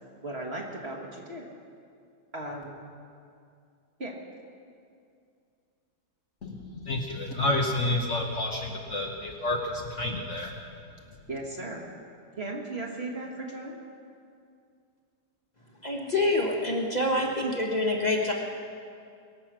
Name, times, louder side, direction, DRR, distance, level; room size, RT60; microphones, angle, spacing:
voice 1, 0.2-1.5 2.3-2.8 4.0-4.1 11.3-11.8 12.4-13.8, right 2 dB, 35° right, -1 dB, 1.6 m, -36 dB
voice 2, 6.4-10.5, left 2 dB, 45° left, 1 dB, 1.2 m, -30 dB
voice 3, 15.8-18.3, left 1 dB, 25° left, -1 dB, 1.4 m, -26 dB
22.0 x 7.6 x 6.2 m, 2.4 s
omnidirectional pair, 1.9 m